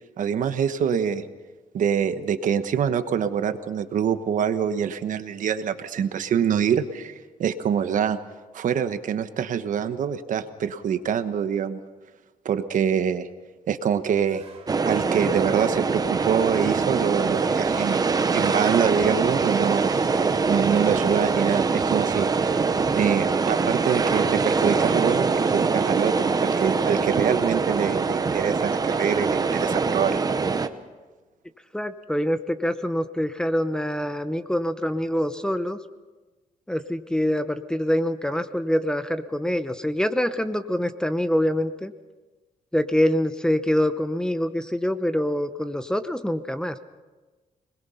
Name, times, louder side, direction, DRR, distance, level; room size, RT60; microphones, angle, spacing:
voice 1, 0.2-1.3 1.7-7.1 7.4-8.2 8.5-11.8 12.4-13.3 13.7-14.4 14.8-19.9 20.5-22.6 22.9-30.2, right 8 dB, 65° right, 10 dB, 1.2 m, -25 dB
sound 1, 14.3-28.3, right 5 dB, 45° right, 2.7 m, -47 dB
sound 2, 14.7-30.7, right 4 dB, 25° right, 0.9 m, -23 dB
voice 2, 31.7-35.8 36.7-41.9 42.7-46.8, equal, 5° left, 10 dB, 0.8 m, -25 dB
26.0 x 20.5 x 5.7 m, 1.3 s
wide cardioid pair, 150°, 14 cm